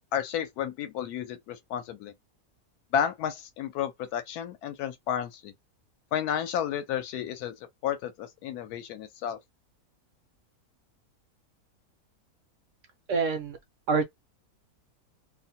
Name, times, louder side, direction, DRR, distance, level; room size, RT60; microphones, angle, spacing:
voice 1, 0.1-2.1 2.9-5.5 6.1-7.6 7.8-9.4, left 9 dB, 80° left, 1.1 m, -32 dB
voice 2, 13.1-13.6 13.9-14.0, right 5 dB, 70° right, 0.8 m, -26 dB
2.7 x 2.1 x 2.7 m
omnidirectional pair, 1.6 m